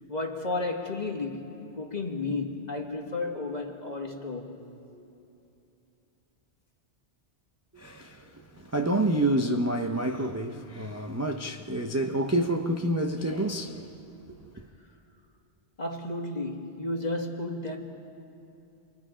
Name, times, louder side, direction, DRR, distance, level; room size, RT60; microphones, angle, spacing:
voice 1, 0.1-4.6 4.9-5.1 15.8-17.8, left 2 dB, 40° left, 1.8 m, -33 dB
voice 2, 7.7-13.9 14.6-14.7, right 1 dB, 15° right, 0.6 m, -28 dB
29.0 x 22.5 x 5.0 m
omnidirectional pair, 1.2 m